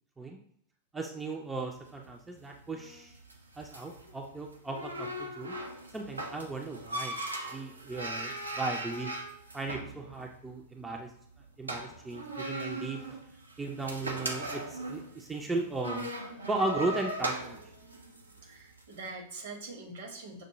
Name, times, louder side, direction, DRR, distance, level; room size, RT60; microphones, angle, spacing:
voice 1, 0.9-3.2 3.6-5.6 5.9-7.2 7.5-9.1 9.5-11.1 11.6-13.2 13.6-16.1 16.5-17.6, right 3 dB, 10° right, 1 dB, 0.5 m, -36 dB
sound 1, 1.7-19.0, right 1 dB, 80° right, 0.5 m, -40 dB
voice 2, 18.4-20.4, right 3 dB, 60° right, 1 dB, 1.0 m, -43 dB
6.2 x 2.2 x 3.0 m, 0.66 s
figure-of-eight pair, 90°, 0 cm